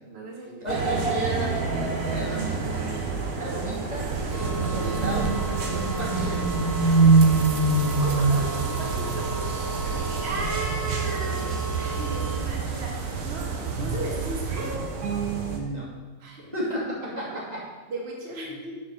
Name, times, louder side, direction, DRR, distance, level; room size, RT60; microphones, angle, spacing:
voice 1, 0.1-0.6 2.7-3.1 8.0-9.5 9.9-14.7 16.2-16.6 17.0-17.4 17.9-18.8, right 2 dB, 45° right, -1 dB, 1.7 m, -36 dB
voice 2, 0.6-2.7 3.4-5.3 5.6-6.5 9.8-10.0 15.4-15.9 16.5-17.7, right 1 dB, 25° right, -6 dB, 2.5 m, -33 dB
sound 1, 0.7-15.6, right 3 dB, 80° right, 1.5 m, -26 dB
sound 2, 3.9-14.8, right 6 dB, 65° right, 1.2 m, -33 dB
sound 3, 4.3-12.4, right 2 dB, 60° left, 2.1 m, -36 dB
7.4 x 4.7 x 6.5 m, 1.4 s
omnidirectional pair, 1.6 m